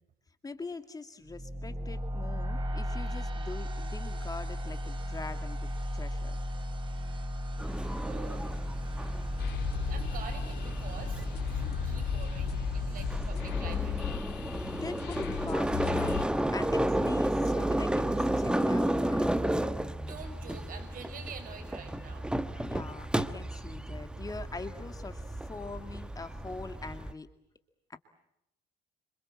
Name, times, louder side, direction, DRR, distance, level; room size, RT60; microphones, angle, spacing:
voice 1, 0.4-6.4 14.8-19.3 22.6-27.3 27.9-28.0, left 3 dB, 20° left, 7 dB, 2.3 m, -43 dB
sound 1, 1.3-14.3, equal, 30° right, 6.0 m, -35 dB
sound 2, 7.6-27.1, right 1 dB, 5° right, 1.3 m, -33 dB
voice 2, 8.0-8.5 9.9-14.1 20.0-22.3, right 6 dB, 55° right, 6 dB, 5.6 m, -47 dB
sound 3, 9.4-16.3, left 12 dB, 75° left, 2.2 m, -36 dB
28.0 x 26.5 x 7.4 m, 0.81 s
cardioid pair, 110°, 17 cm